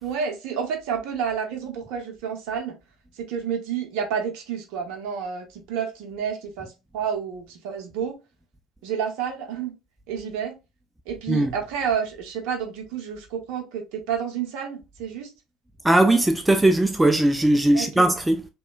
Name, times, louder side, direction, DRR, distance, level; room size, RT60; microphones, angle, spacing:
voice 1, 0.0-2.8 3.1-8.2 8.8-9.7 10.1-10.5 11.1-15.3 17.7-18.1, right 7 dB, 65° right, 0.6 m, -30 dB
voice 2, 15.8-18.5, right 1 dB, 10° right, 0.3 m, -19 dB
2.9 x 2.2 x 2.2 m
figure-of-eight pair, 60°, 0 cm